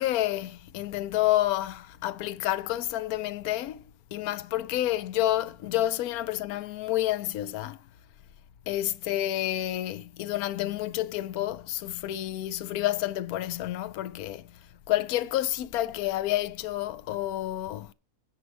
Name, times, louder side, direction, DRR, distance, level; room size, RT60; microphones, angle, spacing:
voice 1, 0.0-3.8 4.1-7.8 8.7-14.4 14.9-17.9, left 14 dB, 70° left, 1.1 m, -29 dB
10.5 x 5.0 x 6.2 m
omnidirectional pair, 1.7 m